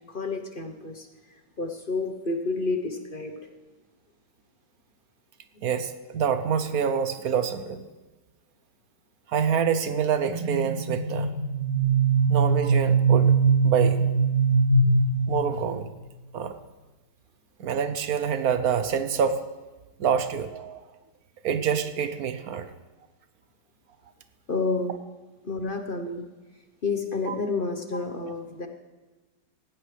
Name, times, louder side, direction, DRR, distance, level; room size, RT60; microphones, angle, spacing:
voice 1, 0.1-1.1 1.6-3.3 24.5-25.0 25.4-26.2 26.8-28.7, left 3 dB, 40° left, 5 dB, 0.9 m, -29 dB
voice 2, 5.6-7.8 9.3-11.3 12.3-13.3 13.6-14.1 15.3-15.9 16.3-16.6 17.6-19.4 20.0-20.8 21.4-22.7 27.3-27.4, right 7 dB, 65° right, 10 dB, 1.2 m, -26 dB
sound 1, 10.3-15.8, right 4 dB, 85° left, 6.6 m, -22 dB
17.0 x 15.0 x 3.3 m, 1.2 s
omnidirectional pair, 1.9 m